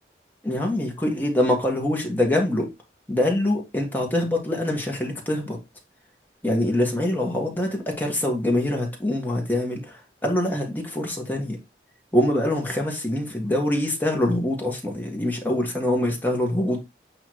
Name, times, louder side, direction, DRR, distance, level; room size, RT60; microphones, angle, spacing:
voice 1, 0.4-2.7 3.1-5.6 6.4-11.6 12.1-16.8, left 1 dB, 10° left, 1.7 m, -24 dB
8.5 x 2.9 x 4.8 m
head